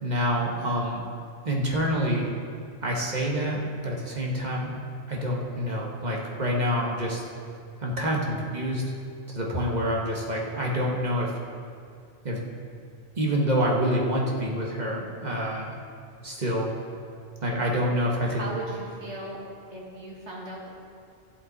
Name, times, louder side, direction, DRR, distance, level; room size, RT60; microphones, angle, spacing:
voice 1, 0.0-1.0 1.4-2.2 2.8-4.8 5.1-7.2 7.8-8.8 9.3-11.3 12.2-12.4 13.2-15.8 16.2-16.7 17.4-18.4, equal, 35° right, -2 dB, 1.4 m, -27 dB
voice 2, 18.2-20.7, right 1 dB, 65° right, -3 dB, 2.2 m, -37 dB
13.5 x 8.1 x 4.1 m, 2.3 s
omnidirectional pair, 1.2 m